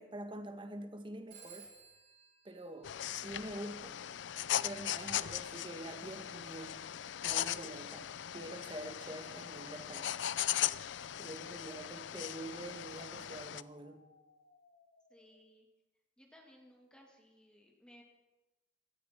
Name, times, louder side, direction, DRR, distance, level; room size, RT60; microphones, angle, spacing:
voice 1, 0.0-1.7 2.4-4.0 4.6-6.8 7.2-10.2 11.2-14.1, right 1 dB, 25° right, 1.3 m, -46 dB
Telephone, 1.3-3.8, right 6 dB, 60° right, 6.3 m, -58 dB
sound 1, 2.8-13.6, left 11 dB, 70° left, 0.4 m, -39 dB
sound 2, 8.0-15.3, left 3 dB, 90° left, 2.6 m, -66 dB
voice 2, 15.1-15.7 16.2-18.0, equal, 5° left, 2.2 m, -61 dB
17.0 x 14.5 x 4.5 m
head